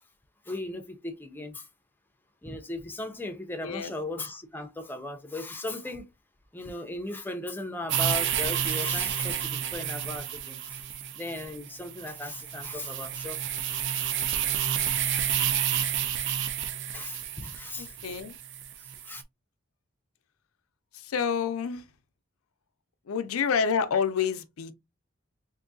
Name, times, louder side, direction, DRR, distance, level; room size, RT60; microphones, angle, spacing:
voice 1, 0.5-1.6 2.4-6.0 6.5-10.8 11.1-13.4 16.9-17.9 19.0-19.2, left 2 dB, 10° left, 0.5 m, -37 dB
voice 2, 3.6-3.9 17.8-18.3 20.9-21.8 23.1-24.7, left 6 dB, 85° left, 0.5 m, -28 dB
sound 1, 7.9-19.2, right 9 dB, 60° right, 0.5 m, -30 dB
3.6 x 2.6 x 2.5 m
head